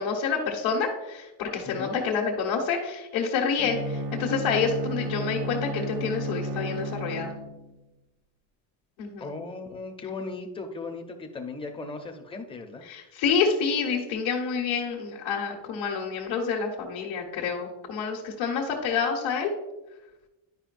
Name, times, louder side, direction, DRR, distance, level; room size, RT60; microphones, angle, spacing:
voice 1, 0.0-7.3 9.0-9.3 12.9-19.5, left 5 dB, 75° left, -3 dB, 1.3 m, -28 dB
voice 2, 1.6-2.0 9.2-13.1, left 3 dB, 10° left, 3 dB, 0.5 m, -37 dB
Bowed string instrument, 3.6-7.8, right 1 dB, 45° right, 0.5 m, -33 dB
10.5 x 5.4 x 2.5 m, 1.0 s
cardioid pair, 175°, 49 cm